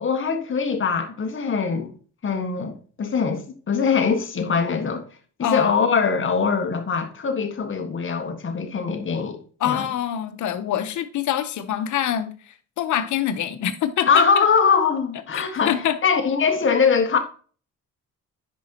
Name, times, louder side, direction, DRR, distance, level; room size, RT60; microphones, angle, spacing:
voice 1, 0.0-1.9 2.2-5.0 5.4-9.8 14.1-15.8 16.0-17.2, left 5 dB, 40° left, 1.6 m, -22 dB
voice 2, 5.4-5.9 9.6-14.5 15.3-16.0, left 10 dB, 75° left, 1.0 m, -25 dB
10.0 x 5.2 x 2.9 m
cardioid pair, 90°, 30 cm